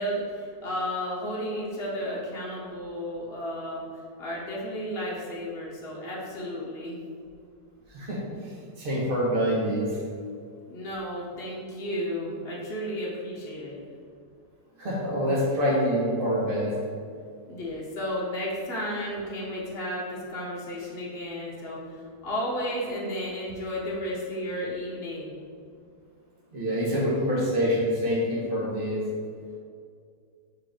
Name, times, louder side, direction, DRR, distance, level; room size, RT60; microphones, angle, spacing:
voice 1, 0.0-3.9 4.2-7.0 10.7-13.8 17.5-21.9 22.2-25.3, equal, 40° left, -5 dB, 1.4 m, -33 dB
voice 2, 8.8-9.9 14.8-16.7 26.5-29.0, equal, 35° right, -6 dB, 1.7 m, -26 dB
4.8 x 4.6 x 5.0 m, 2.3 s
omnidirectional pair, 1.7 m